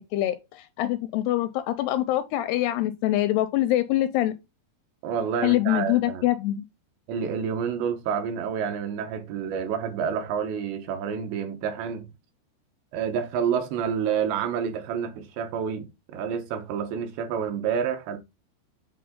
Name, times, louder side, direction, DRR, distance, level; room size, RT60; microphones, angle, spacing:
voice 1, 0.0-4.3 5.4-6.6, left 14 dB, 85° left, 2.4 m, -24 dB
voice 2, 5.0-6.2 7.1-12.1 12.9-18.2, right 7 dB, 80° right, 3.3 m, -29 dB
8.6 x 3.8 x 3.6 m
omnidirectional pair, 5.0 m